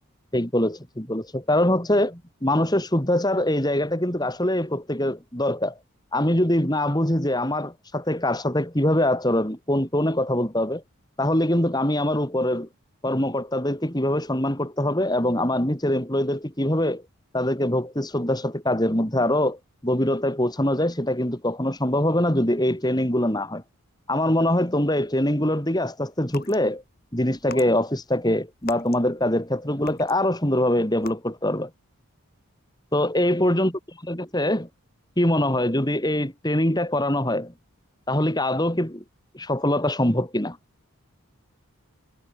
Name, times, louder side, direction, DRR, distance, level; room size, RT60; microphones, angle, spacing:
voice 1, 0.3-5.7 6.1-10.8 11.2-12.7 13.0-17.0 17.3-19.6 19.8-23.6 24.1-26.8 27.1-31.7 32.9-33.7 34.1-34.7 35.2-37.5 38.1-39.0 39.3-40.6, left 1 dB, 20° left, 3.5 m, -23 dB
sound 1, 26.2-26.6 27.3-29.5 29.8-30.4 30.9-31.1, left 5 dB, 45° left, 7.1 m, -42 dB
head